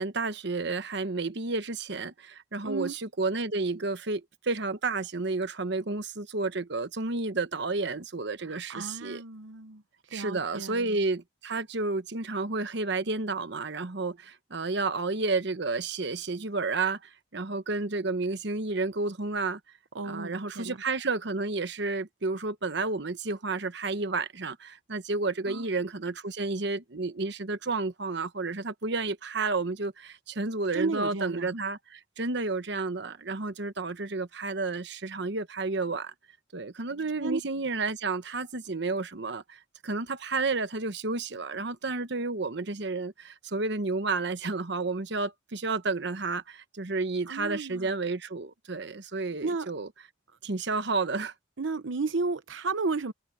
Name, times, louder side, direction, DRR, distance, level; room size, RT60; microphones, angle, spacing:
voice 1, 0.0-9.2 10.1-19.6 20.0-36.1 36.5-49.9 50.4-51.3, right 3 dB, 65° right, 1.1 m, -31 dB
voice 2, 2.6-2.9 8.5-9.8 10.1-11.0 19.9-20.8 25.5-25.6 30.7-31.5 37.2-37.4 47.3-47.9 49.4-49.7 51.6-53.1, right 3 dB, 85° right, 0.9 m, -33 dB
head